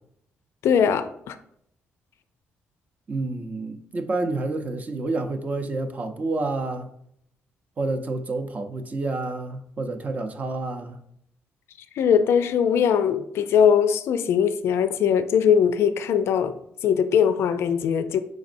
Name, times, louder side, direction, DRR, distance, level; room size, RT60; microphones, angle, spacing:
voice 1, 0.6-1.4 12.0-16.5 16.8-18.2, left 7 dB, 75° left, 11 dB, 0.4 m, -21 dB
voice 2, 3.1-6.9 7.8-11.0, right 2 dB, 35° right, 6 dB, 0.6 m, -29 dB
5.0 x 4.1 x 2.6 m, 0.73 s
cardioid pair, 105°, 4 cm